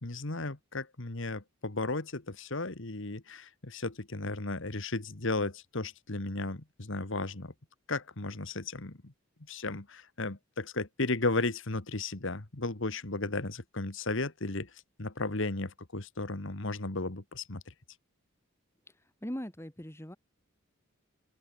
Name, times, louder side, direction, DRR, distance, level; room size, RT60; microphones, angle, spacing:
voice 1, 0.0-7.5 7.9-9.1 9.5-14.7 15.0-17.7, left 2 dB, 60° left, 1.7 m, -34 dB
voice 2, 19.2-20.2, equal, 10° left, 2.0 m, -39 dB
open air
head